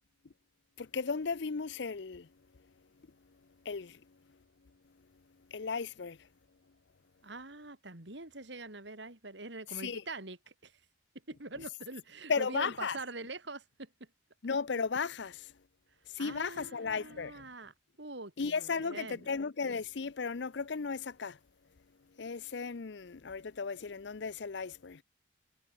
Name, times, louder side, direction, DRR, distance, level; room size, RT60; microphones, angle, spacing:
voice 1, 0.8-2.3 3.6-4.0 5.5-6.2 9.7-10.0 12.3-13.0 14.4-15.5 16.1-17.4 18.4-21.4 22.2-25.0, left 5 dB, 60° left, 0.6 m, -35 dB
voice 2, 7.2-10.8 11.3-14.1 16.2-19.3, right 2 dB, 60° right, 3.3 m, -44 dB
head